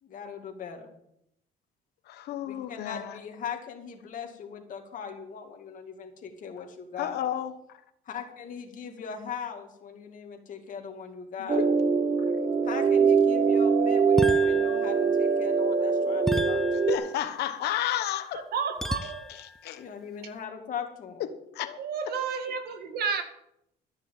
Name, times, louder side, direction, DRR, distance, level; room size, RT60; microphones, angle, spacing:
voice 1, 0.0-0.9 2.5-7.2 8.1-11.6 12.6-16.9 19.8-21.2, left 7 dB, 50° left, 2.3 m, -40 dB
voice 2, 2.1-3.2 6.6-6.7 7.0-7.8 11.4-11.7 16.9-18.4 19.6-19.8 21.2-21.8, left 11 dB, 75° left, 1.1 m, -32 dB
sound 1, 11.5-17.0, right 5 dB, 30° right, 1.1 m, -23 dB
sound 2, 14.2-15.4 16.3-17.5 18.8-19.6, left 1 dB, ahead, 0.4 m, -33 dB
voice 3, 18.3-19.3 21.8-23.2, right 6 dB, 65° right, 2.0 m, -31 dB
13.0 x 6.7 x 7.5 m
cardioid pair, 110°, 17 cm